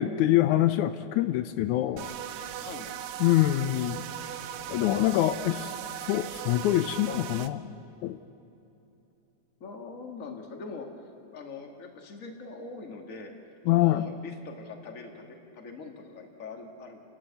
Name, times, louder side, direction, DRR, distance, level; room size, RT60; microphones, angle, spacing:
voice 1, 0.0-2.1 3.2-4.0 4.7-5.7 6.0-7.7 8.0-8.2 13.7-14.1, left 14 dB, 80° left, 10 dB, 2.0 m, -25 dB
sound 1, 2.0-7.5, right 10 dB, 85° right, 1.3 m, -38 dB
voice 2, 2.5-2.9 9.6-10.9 11.3-13.3 13.7-17.0, left 4 dB, 30° left, 3 dB, 1.9 m, -42 dB
30.0 x 12.5 x 8.4 m, 2.9 s
omnidirectional pair, 3.5 m